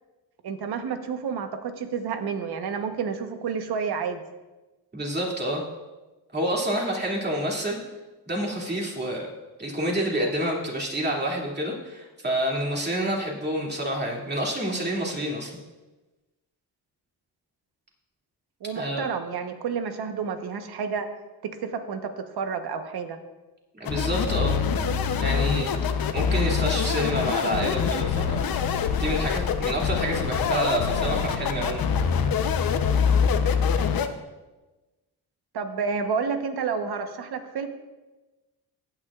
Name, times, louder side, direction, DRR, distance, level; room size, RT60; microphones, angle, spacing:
voice 1, 0.4-4.2 18.6-21.1 21.4-23.2 35.5-37.7, right 6 dB, 70° right, 7 dB, 1.1 m, -30 dB
voice 2, 4.9-5.6 6.3-7.8 8.3-9.3 9.6-15.5 18.7-19.1 23.7-24.6 25.2-25.8 26.1-28.5 29.0-31.9, right 1 dB, 25° right, -2 dB, 2.5 m, -28 dB
sound 1, 23.9-34.1, left 6 dB, 60° left, 0.8 m, -24 dB
14.5 x 9.0 x 2.4 m, 1.1 s
cardioid pair, 100°, 40 cm